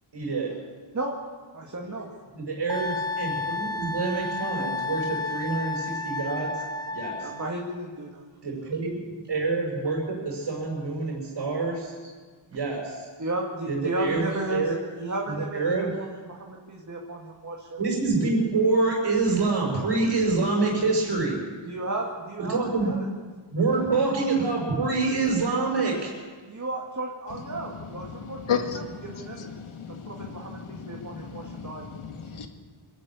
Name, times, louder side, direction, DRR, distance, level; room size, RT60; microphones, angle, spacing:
voice 1, 0.1-0.5 2.3-6.6 6.9-7.3 8.4-12.0 12.5-13.1 13.7-14.8 15.3-15.9 17.8-21.4 22.4-22.9 23.5-26.1, right 3 dB, 60° right, -2 dB, 5.4 m, -26 dB
voice 2, 1.5-2.1 7.2-8.2 13.2-14.7 15.0-15.8 16.2-17.8 21.6-23.0 26.4-29.6 29.9-32.0, right 2 dB, 35° right, -1 dB, 2.3 m, -34 dB
Wind instrument woodwind instrument, 2.7-7.6, left 3 dB, 10° left, 0.8 m, -31 dB
voice 3, 28.5-28.8 29.7-30.3 30.7-31.7 32.0-32.5, left 7 dB, 85° left, 4 dB, 2.2 m, -32 dB
25.5 x 12.0 x 8.5 m, 1.5 s
wide cardioid pair, 140°, 49 cm